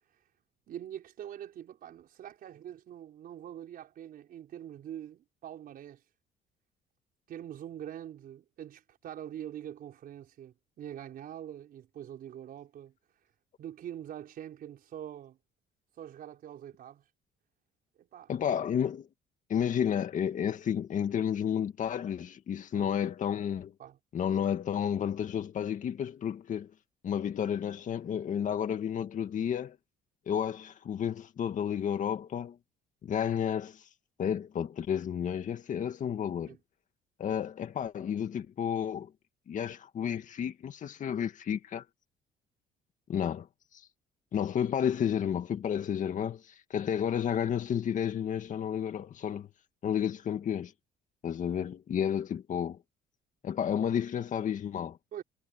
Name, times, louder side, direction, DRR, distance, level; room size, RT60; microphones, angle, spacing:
voice 1, 0.7-6.0 7.3-12.9 13.6-15.4 16.0-17.0 18.0-18.3 22.7-22.9 23.8-24.0 36.5-36.6 55.1-55.2, right 10 dB, 60° right, 4.6 m, -44 dB
voice 2, 18.3-19.1 19.5-23.7 24.1-26.7 27.0-29.8 30.3-32.6 33.0-33.8 34.2-36.6 37.2-39.1 39.5-41.8 43.1-43.5 43.7-43.8 44.3-49.5 49.8-50.7 51.2-52.8 53.4-55.0, left 8 dB, 50° left, 2.0 m, -31 dB
cardioid pair, 110°, 17 cm